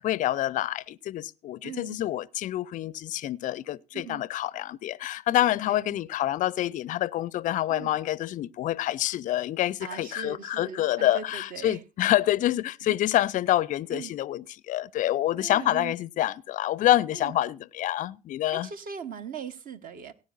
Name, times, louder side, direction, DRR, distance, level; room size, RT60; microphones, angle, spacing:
voice 1, 0.0-18.7, left 13 dB, 40° left, 0.5 m, -27 dB
voice 2, 1.6-2.0 3.9-4.2 5.7-6.0 7.7-7.9 9.8-11.8 12.8-13.0 13.9-14.1 15.4-15.9 17.1-17.3 18.5-20.1, right 6 dB, 40° right, 1.2 m, -40 dB
17.5 x 9.6 x 2.5 m
figure-of-eight pair, 65°, 21 cm